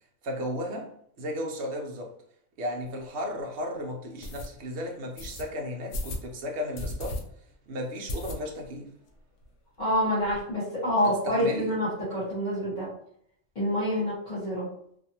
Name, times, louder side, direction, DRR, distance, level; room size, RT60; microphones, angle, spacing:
voice 1, 0.2-0.9 1.2-2.1 2.6-7.2 7.7-8.9 11.0-11.7, equal, 60° right, 0.9 m, -34 dB
sound 1, 2.8-2.9 3.4-3.5 4.2-4.5 5.2-5.4 5.9-6.3 6.7-7.2 7.5-7.6 8.1-8.7 9.1-9.2 9.4-9.5 9.8-10.4, left 1 dB, 65° left, 0.8 m, -35 dB
voice 2, 9.8-12.9 13.5-14.7, equal, 35° left, 1.1 m, -27 dB
2.5 x 2.5 x 2.8 m
omnidirectional pair, 1.4 m